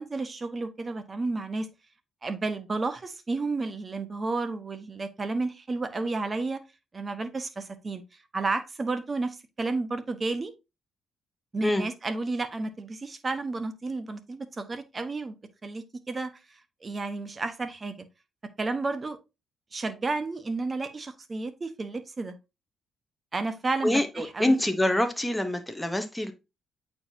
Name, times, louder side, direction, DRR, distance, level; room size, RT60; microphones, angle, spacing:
voice 1, 0.0-1.7 2.2-6.6 6.9-8.0 8.3-10.5 11.5-15.3 15.6-16.3 16.8-18.0 18.6-19.2 19.7-22.3 23.3-24.6, right 3 dB, 30° right, 1.1 m, -31 dB
voice 2, 23.8-26.3, left 1 dB, 5° left, 1.0 m, -25 dB
8.5 x 4.7 x 2.8 m
cardioid pair, 90°, 0 cm